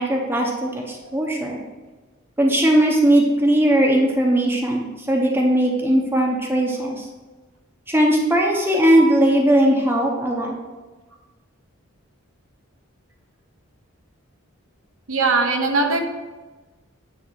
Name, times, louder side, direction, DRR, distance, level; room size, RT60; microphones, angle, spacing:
voice 1, 0.0-1.6 2.4-7.1 7.9-10.5, right 1 dB, 10° right, -1 dB, 0.9 m, -19 dB
voice 2, 15.1-16.0, right 3 dB, 75° right, 3 dB, 1.1 m, -21 dB
9.4 x 3.6 x 5.9 m, 1.2 s
head